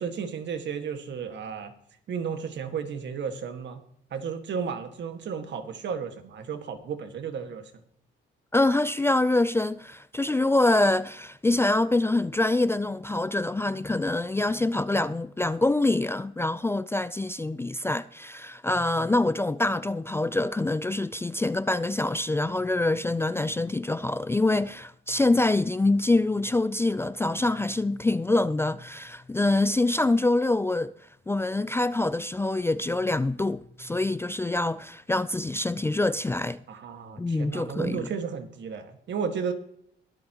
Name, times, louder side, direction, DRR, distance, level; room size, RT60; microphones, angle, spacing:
voice 1, 0.0-1.7 2.1-3.8 4.1-7.7 36.7-39.5, right 6 dB, 65° right, 1.8 m, -33 dB
voice 2, 8.5-30.9 31.3-36.6 37.2-38.1, left 2 dB, 10° left, 0.4 m, -25 dB
22.5 x 8.0 x 3.0 m
cardioid pair, 90°, 20 cm